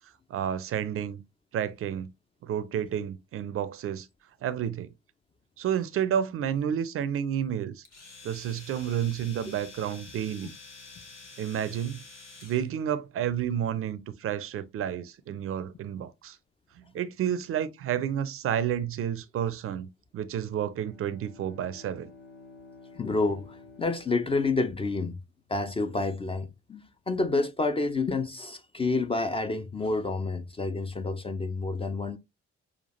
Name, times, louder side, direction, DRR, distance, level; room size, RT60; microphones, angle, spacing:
voice 1, 0.3-1.2 1.5-2.1 2.4-4.1 4.4-4.9 5.6-7.8 8.2-10.5 11.4-12.0 12.4-16.4 16.8-19.9 20.1-22.1, right 9 dB, 40° right, 0.5 m, -30 dB
Domestic sounds home sounds, 7.9-12.7, left 3 dB, 85° left, 0.7 m, -48 dB
Bowed string instrument, 20.7-25.3, left 3 dB, 65° left, 1.4 m, -52 dB
voice 2, 22.9-25.2 25.5-32.2, left 3 dB, 15° left, 0.4 m, -29 dB
6.4 x 2.4 x 2.8 m
figure-of-eight pair, 40°, 34 cm